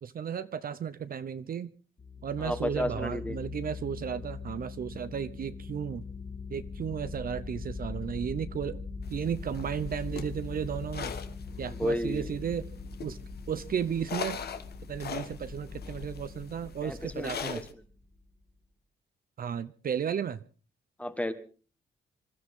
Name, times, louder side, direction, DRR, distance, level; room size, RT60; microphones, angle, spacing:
voice 1, 0.0-1.7 2.2-6.0 6.5-8.8 9.1-11.2 11.6-12.7 13.0-13.2 13.5-14.4 14.9-17.6 19.4-20.4, right 8 dB, 50° right, 0.7 m, -34 dB
sound 1, 2.0-18.2, left 4 dB, 35° left, 3.8 m, -42 dB
voice 2, 2.4-3.4 11.7-12.4 16.8-17.6 21.0-21.3, left 1 dB, 5° left, 1.5 m, -32 dB
sound 2, 9.0-17.7, left 7 dB, 55° left, 1.4 m, -42 dB
26.0 x 13.5 x 3.7 m
cardioid pair, 135°, 19 cm